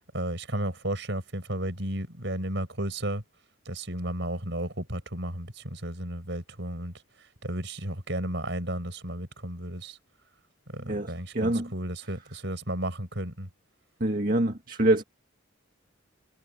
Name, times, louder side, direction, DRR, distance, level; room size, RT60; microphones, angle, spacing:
voice 1, 0.1-3.2 3.7-10.0 10.7-13.5, right 1 dB, 60° right, 5.6 m, -33 dB
voice 2, 11.3-11.7 14.0-15.0, right 1 dB, 45° right, 1.9 m, -25 dB
head